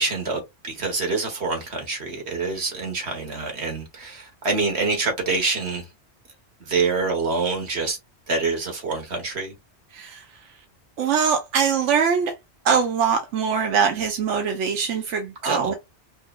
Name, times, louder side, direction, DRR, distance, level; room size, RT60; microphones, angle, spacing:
voice 1, 0.0-5.9 6.6-8.0 8.3-9.5 15.4-15.7, right 4 dB, 65° right, 1.7 m, -26 dB
voice 2, 9.9-10.2 11.0-12.3 12.6-15.7, right 6 dB, 90° right, 1.1 m, -22 dB
5.3 x 2.6 x 2.4 m
omnidirectional pair, 1.2 m